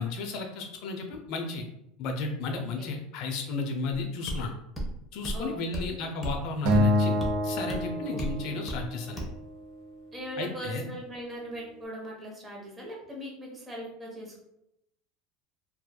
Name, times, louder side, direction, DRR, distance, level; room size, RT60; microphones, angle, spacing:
voice 1, 0.0-1.6 2.0-4.5 5.1-9.2 10.4-10.9, left 3 dB, 60° left, 3 dB, 0.4 m, -33 dB
voice 2, 2.5-2.9 5.3-6.1 8.1-8.6 10.1-14.4, right 1 dB, 15° right, -3 dB, 0.9 m, -40 dB
sound 1, 4.3-4.4 4.8-4.9 5.2-5.4 5.7-5.9 6.2-6.4 6.7-6.9 7.2-7.3 7.7-7.8 8.2-8.4 8.7-8.8 9.2-9.3, right 1 dB, 10° left, 0.7 m, -33 dB
Acoustic guitar, 6.7-9.0, left 1 dB, 70° right, 0.5 m, -26 dB
2.7 x 2.2 x 2.2 m, 0.81 s
supercardioid pair, 110°, 0 cm